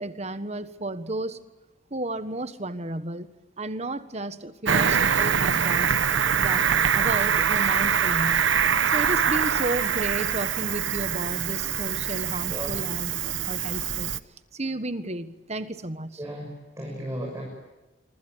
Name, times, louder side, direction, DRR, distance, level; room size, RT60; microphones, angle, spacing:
voice 1, 0.0-1.4 1.9-3.3 3.6-6.0 6.4-6.7 6.9-8.5 8.9-14.1 14.5-16.2, right 2 dB, 35° right, 12 dB, 1.4 m, -33 dB
Cricket, 4.6-14.2, right 7 dB, 70° right, 1.0 m, -24 dB
voice 2, 16.2-17.5, equal, 15° right, -1 dB, 6.3 m, -35 dB
25.5 x 25.0 x 8.2 m, 1.1 s
head